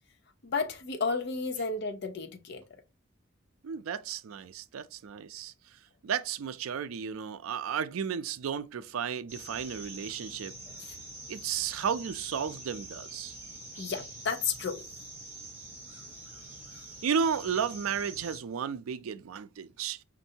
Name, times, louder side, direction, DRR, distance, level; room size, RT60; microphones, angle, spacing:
voice 1, 0.4-2.6 10.8-10.9 13.8-14.8, left 4 dB, 55° left, 0.6 m, -32 dB
voice 2, 3.6-5.5 6.0-10.5 11.3-13.3 17.0-20.0, right 7 dB, 90° right, 0.4 m, -33 dB
sound 1, 9.3-18.4, right 2 dB, 10° right, 2.2 m, -45 dB
5.3 x 2.6 x 2.7 m
head